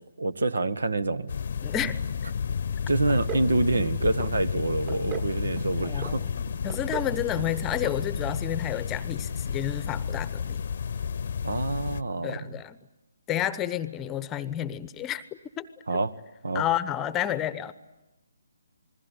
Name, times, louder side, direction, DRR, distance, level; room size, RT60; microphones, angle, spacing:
voice 1, 0.2-1.3 2.9-6.2 11.4-12.5 15.9-16.1 16.4-16.6, right 2 dB, 70° right, 16 dB, 1.4 m, -27 dB
sound 1, 1.3-12.0, left 6 dB, 55° left, 0.9 m, -31 dB
voice 2, 1.6-2.3 5.8-6.3 6.6-10.6 12.2-12.8 13.3-15.2 15.6-15.7 16.5-17.7, left 11 dB, 15° left, 15 dB, 1.0 m, -30 dB
sound 2, 3.1-3.5 3.7-4.3 4.6-5.3 5.6-6.1 6.5-7.1 7.4-7.6 7.8-8.0 8.3-8.4, right 8 dB, 30° right, 2.0 m, -36 dB
28.0 x 21.0 x 10.0 m, 1.0 s
figure-of-eight pair, 140°, 0 cm